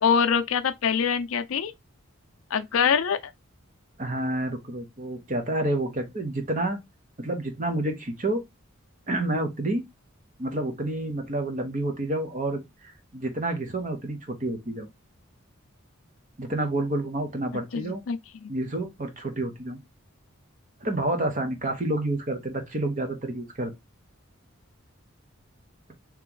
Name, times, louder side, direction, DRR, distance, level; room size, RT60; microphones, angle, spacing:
voice 1, 0.0-1.7 2.5-3.3 17.7-18.5, left 6 dB, 80° left, 0.5 m, -24 dB
voice 2, 4.0-6.8 7.2-8.4 9.1-9.8 10.4-14.9 16.4-18.0 18.5-19.8 20.8-23.7, right 1 dB, 40° right, 1.0 m, -29 dB
3.2 x 3.0 x 3.8 m
head